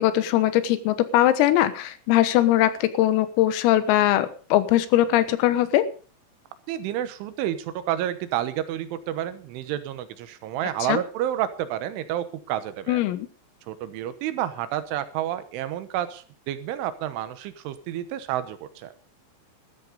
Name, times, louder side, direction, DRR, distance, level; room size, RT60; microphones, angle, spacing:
voice 1, 0.0-5.8 10.9-11.0 12.9-13.3, left 13 dB, 85° left, 13 dB, 3.8 m, -21 dB
voice 2, 6.7-13.0 13.7-18.9, right 12 dB, 75° right, 12 dB, 3.4 m, -30 dB
13.5 x 13.5 x 5.1 m, 0.38 s
omnidirectional pair, 5.9 m